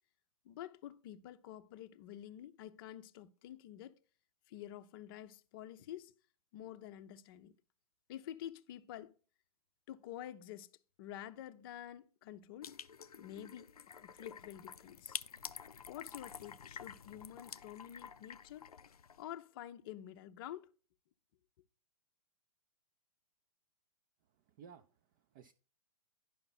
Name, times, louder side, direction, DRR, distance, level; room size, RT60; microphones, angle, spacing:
voice 1, 0.4-4.0 4.5-6.1 6.5-7.5 8.1-9.1 9.9-10.7 11.0-12.7 13.1-15.2 15.9-18.7 19.2-20.7, left 11 dB, 40° left, 0.6 m, -49 dB
sound 1, 12.6-19.2, left 7 dB, 75° left, 0.5 m, -49 dB
voice 2, 24.2-25.5, right 7 dB, 35° right, 0.5 m, -58 dB
10.5 x 5.7 x 4.1 m
figure-of-eight pair, 115°, 19 cm